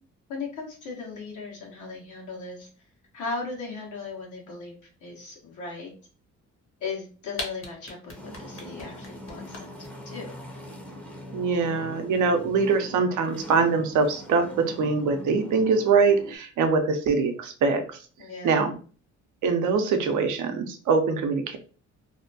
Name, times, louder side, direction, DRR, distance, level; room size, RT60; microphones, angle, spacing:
voice 1, 0.3-2.7 3.1-5.9 6.8-9.7 10.0-10.3 18.2-18.6, left 4 dB, 75° left, -1 dB, 1.1 m, -37 dB
sound 1, 7.0-7.1 7.3-9.9, left 2 dB, 45° left, 0.9 m, -36 dB
sound 2, 8.1-16.4, equal, 5° left, 0.6 m, -42 dB
voice 2, 11.3-18.0 18.4-18.7 19.4-21.6, right 4 dB, 75° right, 6 dB, 0.6 m, -23 dB
2.7 x 2.2 x 2.6 m, 0.39 s
cardioid pair, 90°, 30 cm